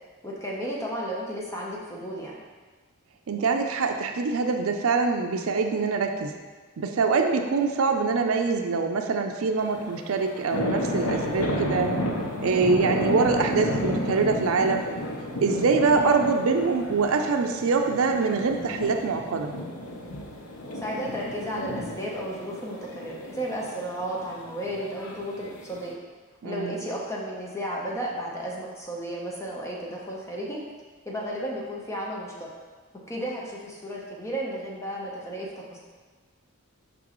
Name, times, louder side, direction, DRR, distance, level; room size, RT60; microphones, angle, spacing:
voice 1, 0.2-2.4 20.8-26.0 26.4-30.6 31.1-32.5 32.9-35.8, equal, 15° left, -4 dB, 0.9 m, -33 dB
voice 2, 3.3-6.3 6.8-11.9 12.4-14.9 15.4-19.5 26.4-26.8, right 4 dB, 75° right, 4 dB, 0.5 m, -24 dB
sound 1, 9.6-25.9, left 1 dB, 85° left, 0.8 m, -32 dB
6.1 x 5.3 x 3.0 m, 1.4 s
head